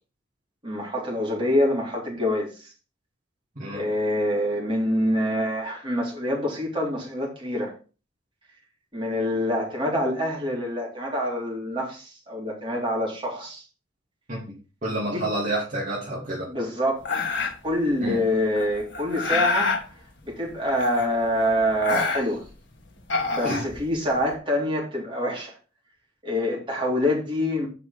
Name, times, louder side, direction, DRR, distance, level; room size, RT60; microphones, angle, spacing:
voice 1, 0.6-2.7 3.7-7.7 8.9-13.6 15.1-15.2 16.5-17.0 17.6-19.9 20.2-22.4 23.3-25.5 26.2-27.7, left 1 dB, 25° right, 3.7 m, -26 dB
voice 2, 14.8-16.5 18.0-18.2 21.9-22.0 23.4-23.6, right 1 dB, 45° right, 2.8 m, -29 dB
sound 1, 17.0-17.7 18.6-19.8 20.7-21.3 21.6-22.5 23.0-24.2, left 4 dB, 65° left, 1.9 m, -27 dB
7.9 x 5.7 x 5.4 m
head